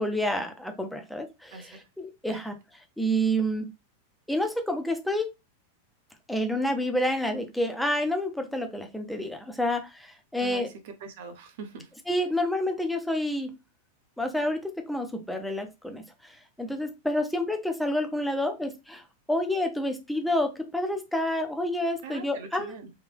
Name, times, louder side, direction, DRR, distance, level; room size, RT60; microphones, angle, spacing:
voice 1, 0.0-2.5 3.0-3.7 4.3-5.3 6.3-10.7 12.1-13.5 14.2-19.0 19.3-22.7, equal, ahead, 5 dB, 0.5 m, -29 dB
voice 2, 1.5-1.8 2.3-2.5 10.4-11.9 22.0-22.9, right 5 dB, 55° right, 6 dB, 0.8 m, -42 dB
3.4 x 2.2 x 3.4 m, 0.24 s
supercardioid pair, 165°, 0 cm